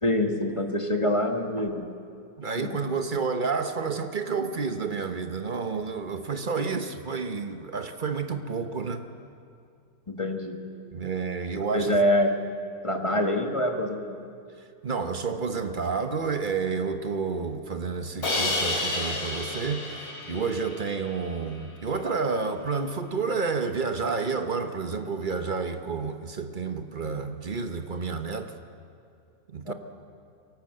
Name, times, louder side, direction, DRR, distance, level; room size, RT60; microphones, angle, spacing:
voice 1, 0.0-1.9 2.6-2.9 10.1-10.6 11.7-12.4 12.8-14.2 29.6-29.7, left 1 dB, 20° left, 1.4 m, -25 dB
voice 2, 2.4-9.0 10.9-11.9 14.8-28.5 29.5-29.7, right 5 dB, 35° right, 0.9 m, -30 dB
Crash cymbal, 18.2-21.3, left 2 dB, 65° left, 3.5 m, -30 dB
23.0 x 18.0 x 7.7 m
omnidirectional pair, 1.8 m